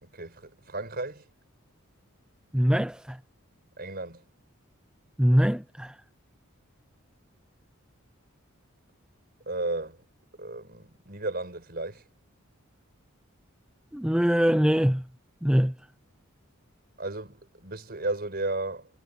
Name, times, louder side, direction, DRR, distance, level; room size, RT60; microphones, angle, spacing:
voice 1, 0.0-1.2 3.8-4.2 9.5-10.0 10.4-12.0 17.0-18.9, right 2 dB, 45° right, 5.4 m, -34 dB
voice 2, 2.5-3.2 5.2-6.0 13.9-15.0 15.4-15.7, equal, 5° right, 0.6 m, -23 dB
head